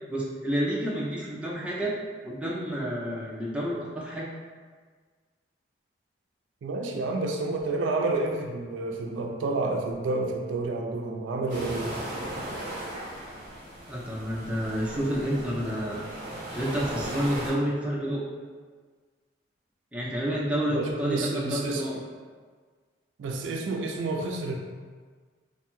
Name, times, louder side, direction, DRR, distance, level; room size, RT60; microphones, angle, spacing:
voice 1, 0.1-1.9 2.2-4.3 13.9-16.1 16.5-18.2 19.9-22.0, equal, 5° right, -5 dB, 0.3 m, -29 dB
voice 2, 6.6-12.0 20.7-21.8 23.2-24.6, right 3 dB, 85° right, 2 dB, 0.3 m, -29 dB
sound 1, 11.5-17.5, right 1 dB, 40° right, 0.8 m, -37 dB
2.5 x 2.2 x 2.9 m, 1.5 s
head